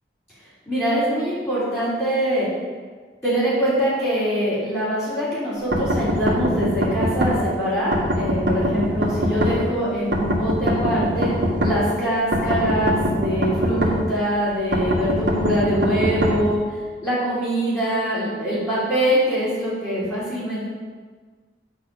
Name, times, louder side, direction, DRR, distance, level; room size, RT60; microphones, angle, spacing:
voice 1, 0.7-2.5 3.2-11.3 11.6-16.6 17.0-20.7, equal, 15° left, -13 dB, 3.3 m, -23 dB
sound 1, 5.7-7.3 7.9-9.5 10.1-11.7 12.3-13.9 14.7-16.3, equal, 85° right, 1.8 m, -21 dB
10.5 x 4.5 x 7.0 m, 1.5 s
head